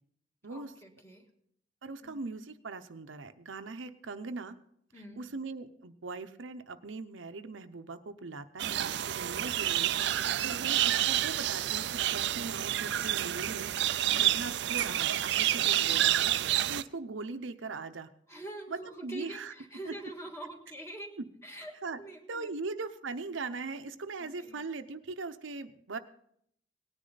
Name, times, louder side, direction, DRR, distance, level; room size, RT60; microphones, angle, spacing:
voice 1, 0.5-1.3 2.0-2.2 4.9-5.2 10.2-10.6 14.0-14.2 18.3-22.5 24.2-24.6, right 2 dB, 15° left, 2 dB, 1.6 m, -45 dB
voice 2, 1.8-4.5 5.2-9.9 10.4-13.7 14.1-16.3 16.7-18.1 18.7-19.5 19.9-20.0 21.2-21.3 21.8-22.0 22.3-26.0, right 3 dB, 85° right, 8 dB, 0.8 m, -40 dB
sound 1, 8.6-16.8, right 13 dB, 60° right, 0.4 m, -29 dB
18.5 x 9.9 x 4.0 m, 0.68 s
head